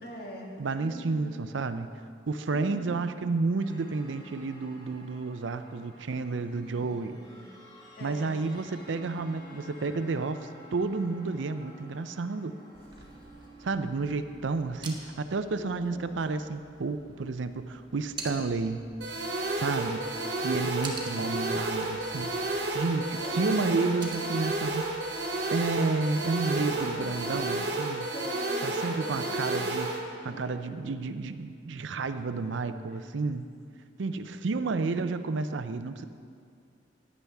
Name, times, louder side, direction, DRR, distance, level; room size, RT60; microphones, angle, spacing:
voice 1, 0.0-0.5 0.8-1.5 2.5-3.2 6.5-7.5 8.0-8.4 15.6-16.3 23.0-24.6 26.4-27.7 28.1-29.7 30.1-31.0 32.9-33.1 34.0-34.4, left 1 dB, 55° left, -2 dB, 2.0 m, -44 dB
voice 2, 0.6-1.9 2.3-7.2 8.0-12.6 13.6-18.8 19.6-20.0 20.4-24.8 25.5-28.1 28.6-29.9 30.2-33.4 34.0-36.0, right 3 dB, 80° right, 11 dB, 0.5 m, -31 dB
sound 1, 3.6-14.0, equal, 25° left, 1.6 m, -51 dB
sound 2, 12.7-27.5, right 3 dB, 25° right, 1.2 m, -48 dB
sound 3, 19.0-30.0, right 2 dB, 60° right, 1.3 m, -31 dB
15.0 x 9.7 x 3.5 m, 2.3 s
head